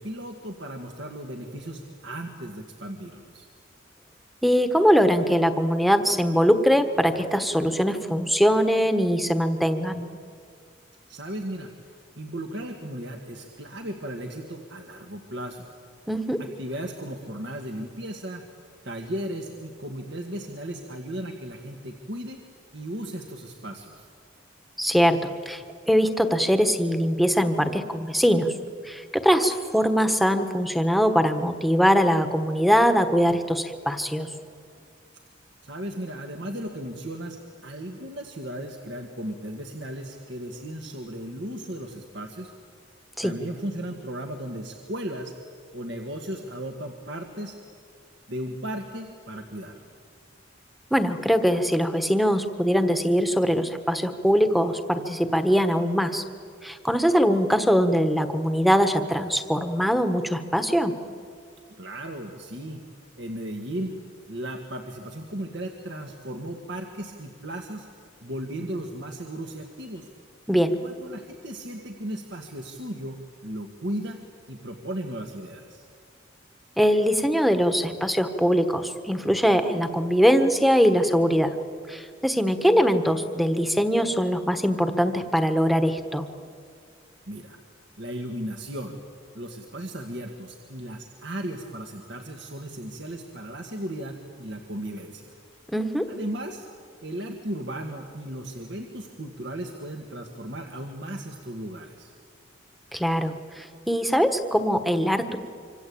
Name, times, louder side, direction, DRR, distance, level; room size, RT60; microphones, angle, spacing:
voice 1, 0.0-3.5 11.1-15.7 16.4-18.4 18.8-22.4 22.7-24.1 35.6-42.5 43.2-45.3 45.7-47.6 48.3-49.9 61.8-62.8 63.2-63.9 64.3-67.9 68.2-70.1 70.8-73.2 73.4-74.2 74.5-75.9 87.3-87.6 88.0-89.0 89.3-95.3 96.1-96.7 97.0-102.1, right 1 dB, 65° right, 3 dB, 1.8 m, -36 dB
voice 2, 4.4-10.1 16.1-16.4 24.8-28.5 28.8-34.3 43.2-43.3 50.9-56.2 56.6-60.9 70.5-70.7 76.8-81.5 81.9-86.3 95.7-96.1 102.9-105.4, equal, ahead, 8 dB, 1.3 m, -22 dB
26.0 x 25.5 x 8.6 m, 2.2 s
head